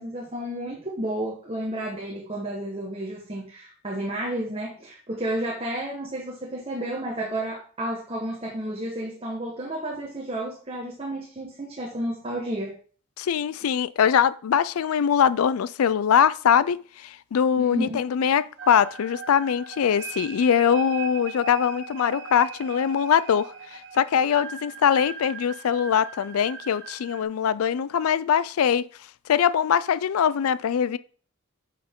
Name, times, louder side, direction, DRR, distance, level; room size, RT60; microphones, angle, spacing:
voice 1, 0.0-12.7 17.6-18.0, right 1 dB, 30° right, 1.3 m, -31 dB
voice 2, 13.2-28.8 29.3-31.0, left 8 dB, 85° left, 0.4 m, -22 dB
sound 1, 18.6-27.2, right 5 dB, 55° right, 1.0 m, -39 dB
8.7 x 5.7 x 3.7 m
head